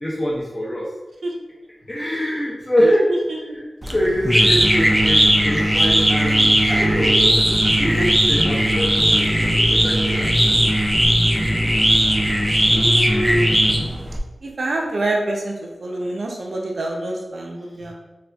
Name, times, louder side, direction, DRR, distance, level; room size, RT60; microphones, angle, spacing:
voice 1, 0.0-0.8 1.9-3.0 3.5-5.2 5.4-7.4 7.7-10.5, equal, 35° left, -7 dB, 0.6 m, -24 dB
sound 1, 3.8-14.2, equal, 10° right, 0.3 m, -17 dB
voice 2, 12.7-13.5 14.6-15.5 15.8-17.9, right 1 dB, 70° right, 0 dB, 0.5 m, -25 dB
4.1 x 2.3 x 2.2 m, 1.1 s
wide cardioid pair, 90°, 0 cm